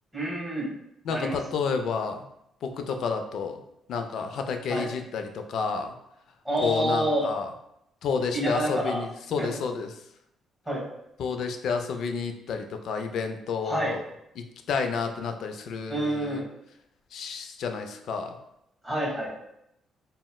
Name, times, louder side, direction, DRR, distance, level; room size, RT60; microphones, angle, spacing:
voice 1, 0.1-0.7 1.1-1.6 4.7-4.9 6.4-7.3 8.3-9.0 9.4-9.5 10.7-10.8 13.6-13.9 15.9-16.4 18.8-19.4, right 1 dB, ahead, -3 dB, 1.4 m, -28 dB
voice 2, 1.1-2.3 2.6-3.6 3.9-5.9 6.6-7.5 8.0-9.9 11.2-14.0 14.4-16.4 17.1-18.4, left 5 dB, 70° left, 6 dB, 0.3 m, -30 dB
4.0 x 2.0 x 2.2 m, 0.79 s
cardioid pair, 90°, 0 cm